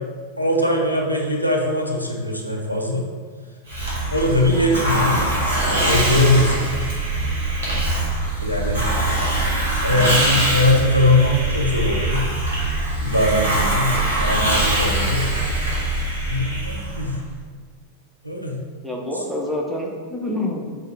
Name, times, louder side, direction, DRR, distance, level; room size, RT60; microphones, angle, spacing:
voice 1, 0.4-3.0 4.1-5.2 5.8-6.7 8.4-8.9 9.8-12.3 13.0-13.9 14.2-15.3 16.3-17.2 18.2-18.6, left 1 dB, 90° left, -1 dB, 0.5 m, -20 dB
Hiss, 3.7-17.2, right 1 dB, 65° right, 1.1 m, -22 dB
voice 2, 4.5-4.9 13.9-14.3 18.8-20.8, left 1 dB, 5° right, -1 dB, 0.6 m, -28 dB
5.4 x 2.0 x 3.4 m, 1.6 s
figure-of-eight pair, 90°, 0 cm